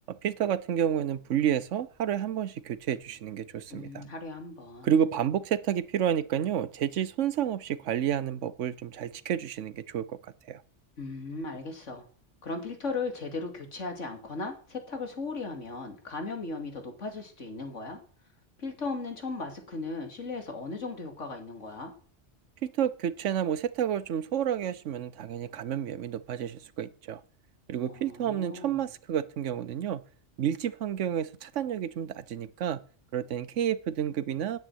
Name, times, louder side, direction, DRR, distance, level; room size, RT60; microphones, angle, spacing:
voice 1, 0.1-4.0 4.8-10.6 22.6-27.2 27.7-30.0 30.4-32.8 33.1-34.6, right 9 dB, 85° right, 1.1 m, -30 dB
voice 2, 3.7-5.1 11.0-12.1 12.4-18.0 18.6-21.9 27.8-28.8, left 3 dB, 90° left, 2.9 m, -37 dB
9.3 x 9.0 x 9.3 m
omnidirectional pair, 1.2 m